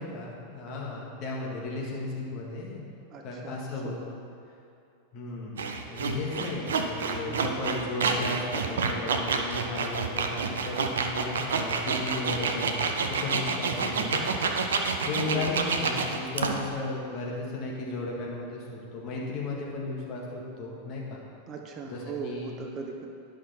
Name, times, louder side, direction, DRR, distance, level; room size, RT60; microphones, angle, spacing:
voice 1, 0.0-2.9 3.2-4.1 5.1-5.6 5.9-14.4 15.1-21.2 21.9-22.5, left 3 dB, 40° left, -3 dB, 1.8 m, -35 dB
voice 2, 3.1-3.9 7.3-7.5 15.3-15.5 21.5-23.1, right 5 dB, 30° right, 3 dB, 0.7 m, -39 dB
sound 1, 5.6-16.7, right 5 dB, 65° right, 0.6 m, -28 dB
11.0 x 5.9 x 4.3 m, 2.6 s
figure-of-eight pair, 90°, 0 cm